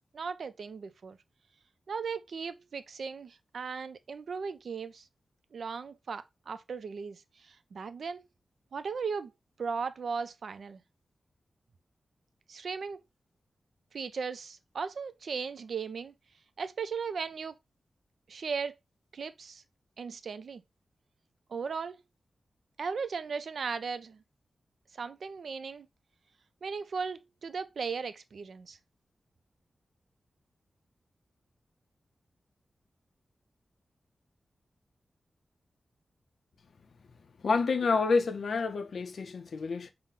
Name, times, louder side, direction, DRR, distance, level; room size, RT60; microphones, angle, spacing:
voice 1, 0.1-1.2 1.9-5.1 5.5-8.2 8.7-9.3 9.6-10.8 12.5-13.0 13.9-16.1 16.6-17.5 18.3-18.7 19.1-19.6 20.0-20.6 21.5-22.0 22.8-24.2 25.0-25.9 26.6-28.8, right 5 dB, 65° right, 0.4 m, -37 dB
voice 2, 37.4-39.9, left 4 dB, 65° left, 0.4 m, -28 dB
5.7 x 2.0 x 3.6 m
wide cardioid pair, 165°, 0 cm